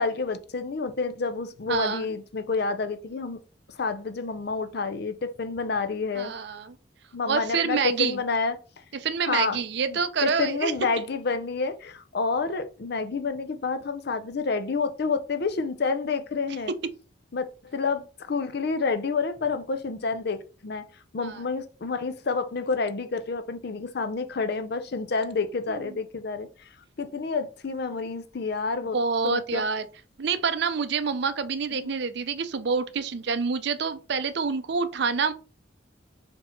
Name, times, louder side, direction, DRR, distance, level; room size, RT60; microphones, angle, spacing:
voice 1, 0.0-3.4 3.7-6.3 7.1-8.6 9.2-9.6 9.9-16.7 17.3-20.8 21.1-26.7 27.0-29.0 29.2-29.7 31.7-31.9, left 4 dB, 55° left, 0.5 m, -29 dB
voice 2, 1.7-2.1 6.2-6.8 7.2-8.2 9.0-10.7 21.2-21.4 25.7-25.8 28.9-29.8 30.2-35.3, right 5 dB, 60° right, 0.5 m, -27 dB
4.3 x 2.8 x 4.3 m
head